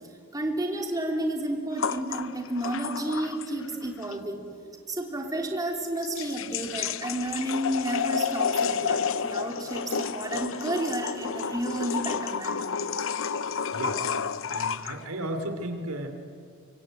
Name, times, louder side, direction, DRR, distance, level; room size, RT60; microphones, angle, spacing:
voice 1, 0.3-4.4 4.9-12.7, right 1 dB, 15° right, 2 dB, 3.1 m, -31 dB
sound 1, 1.8-3.7 4.0-4.1 5.9-15.0, left 6 dB, 65° left, 0.8 m, -30 dB
voice 2, 13.5-14.0 14.5-16.1, right 1 dB, 90° right, 6 dB, 3.1 m, -34 dB
24.5 x 24.5 x 9.2 m, 2.3 s
head